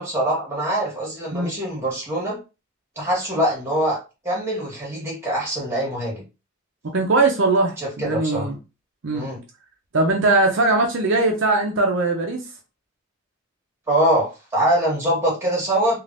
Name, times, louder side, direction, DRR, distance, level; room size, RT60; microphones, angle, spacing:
voice 1, 0.0-2.4 2.9-4.0 4.2-6.2 7.8-8.5 9.1-9.4 13.9-16.0, right 1 dB, 15° right, -3 dB, 1.4 m, -23 dB
voice 2, 6.9-8.6 9.0-9.3 9.9-12.4, right 2 dB, 65° right, 2 dB, 0.6 m, -20 dB
3.3 x 2.5 x 2.5 m, 0.29 s
head